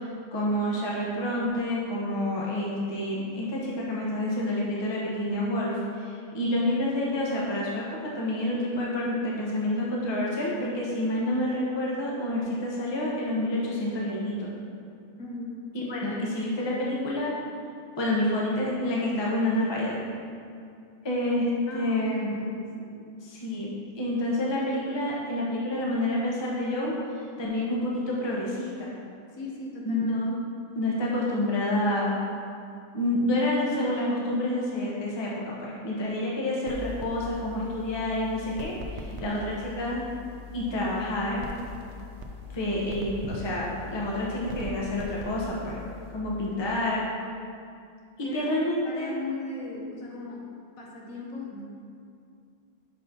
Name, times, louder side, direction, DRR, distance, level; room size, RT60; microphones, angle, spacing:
voice 1, 0.3-14.5 15.7-17.3 18.0-20.0 21.0-21.5 21.7-22.4 23.2-28.9 29.9-30.4 30.7-32.2 32.9-40.0 40.5-41.4 42.5-45.8 46.1-47.0 48.2-49.1, left 1 dB, 20° left, -4 dB, 0.8 m, -28 dB
voice 2, 15.2-15.7 21.7-22.5 22.8-23.0 29.3-30.2 39.1-39.8 40.2-40.3 46.5-46.8 48.2-48.5 48.8-50.4 50.8-51.6, left 2 dB, 65° left, -2 dB, 1.3 m, -38 dB
sound 1, 36.7-46.9, left 2 dB, 60° right, 0.8 m, -41 dB
5.8 x 4.2 x 5.3 m, 2.4 s
omnidirectional pair, 1.6 m